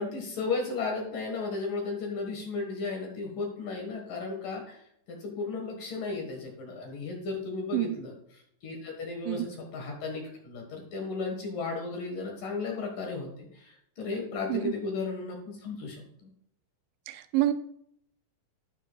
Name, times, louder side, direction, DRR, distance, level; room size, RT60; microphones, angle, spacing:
voice 1, 0.0-16.3, left 4 dB, 60° left, 1 dB, 2.6 m, -35 dB
voice 2, 17.1-17.5, right 15 dB, 85° right, 9 dB, 3.0 m, -27 dB
12.0 x 9.4 x 2.3 m, 0.72 s
omnidirectional pair, 5.2 m